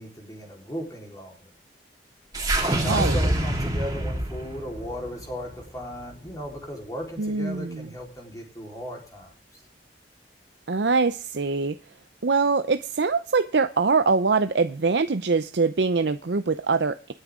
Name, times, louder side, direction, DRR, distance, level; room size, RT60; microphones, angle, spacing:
voice 1, 0.0-1.4 2.6-9.6, equal, 20° left, 4.0 m, -36 dB
sound 1, 2.3-6.7, right 1 dB, 20° right, 3.6 m, -27 dB
voice 2, 2.7-3.2 7.2-7.9 10.7-11.8 12.2-17.1, right 4 dB, 75° right, 0.7 m, -23 dB
28.0 x 9.8 x 3.7 m
head